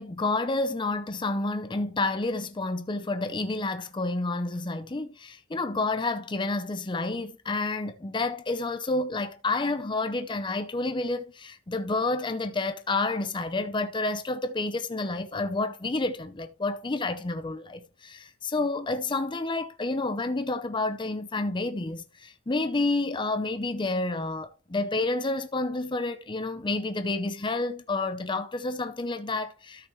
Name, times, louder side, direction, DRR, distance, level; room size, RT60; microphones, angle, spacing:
voice 1, 0.0-29.9, left 2 dB, 25° left, 0.6 m, -29 dB
13.0 x 5.8 x 3.1 m
head